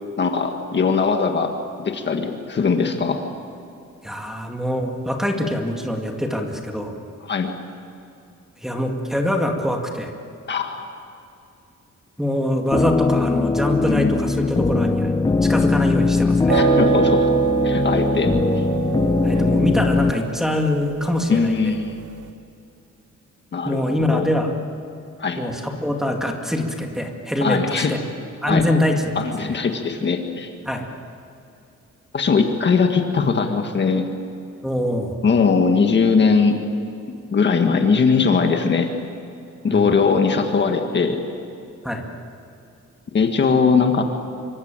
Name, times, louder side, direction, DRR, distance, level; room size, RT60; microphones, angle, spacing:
voice 1, 0.2-3.2 7.3-7.5 10.5-10.9 13.9-14.1 16.5-17.3 17.6-18.3 21.3-22.0 23.5-24.3 25.2-25.4 27.4-27.9 28.5-28.6 29.2-30.5 32.1-34.1 35.2-36.6 37.3-38.9 39.6-41.2 43.1-44.0, left 5 dB, 40° left, 4 dB, 1.8 m, -20 dB
voice 2, 4.0-7.0 8.6-10.1 12.2-15.1 15.4-16.6 19.2-21.7 23.6-24.5 25.4-28.0 28.4-29.1 30.7-30.9 34.6-35.1 39.7-39.9 41.8-42.0, left 1 dB, ahead, 1 dB, 2.1 m, -24 dB
sound 1, 12.7-20.1, left 3 dB, 15° left, 0.6 m, -20 dB
sound 2, 16.5-22.0, right 11 dB, 85° right, 1.4 m, -25 dB
26.5 x 24.0 x 9.0 m, 2.6 s
wide cardioid pair, 175°, 29 cm